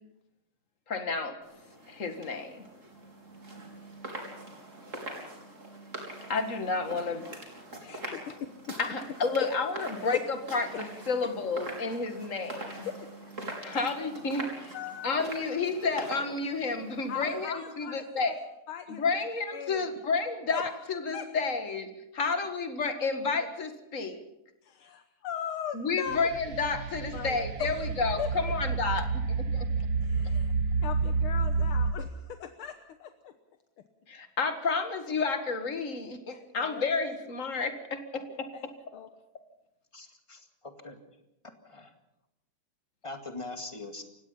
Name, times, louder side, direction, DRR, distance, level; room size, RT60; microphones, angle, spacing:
voice 1, 0.9-1.4 1.9-2.7 6.3-7.4 7.8-7.9 8.8-10.2 10.5-12.9 13.6-14.8 15.0-18.3 18.9-24.2 25.7-29.7 34.1-38.5, left 4 dB, 40° left, 7 dB, 2.1 m, -31 dB
sound 1, 1.4-17.4, right 1 dB, 35° right, 4.3 m, -43 dB
voice 2, 7.9-8.4 8.7-8.8 9.4-9.5 10.1-10.2 13.0-13.3 13.8-13.9 14.7-15.3 17.1-18.4 18.7-19.0 19.5-19.9 20.5-20.6 21.1-21.3 24.6-26.2 27.1-27.8 28.2-28.5 30.0-30.5 30.8-33.3 36.3-36.8 38.3-39.1, left 9 dB, 75° left, 7 dB, 1.9 m, -39 dB
sound 2, 26.1-31.9, right 4 dB, 55° right, 1.5 m, -29 dB
voice 3, 39.9-41.0 41.6-41.9 43.0-44.0, left 2 dB, 15° left, 5 dB, 2.0 m, -42 dB
29.0 x 16.5 x 5.7 m, 0.88 s
omnidirectional pair, 2.4 m